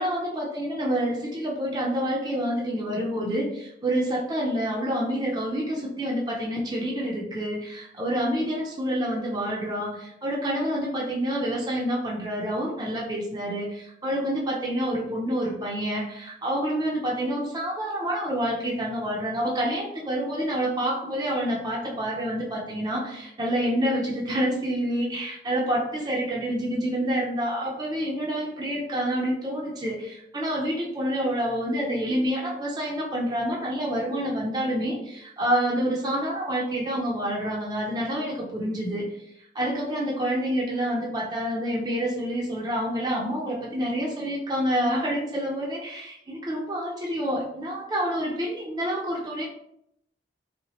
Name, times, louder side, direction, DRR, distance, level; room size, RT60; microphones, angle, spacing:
voice 1, 0.0-39.1 39.5-49.4, equal, 20° right, -3 dB, 0.5 m, -28 dB
3.1 x 2.8 x 3.0 m, 0.76 s
head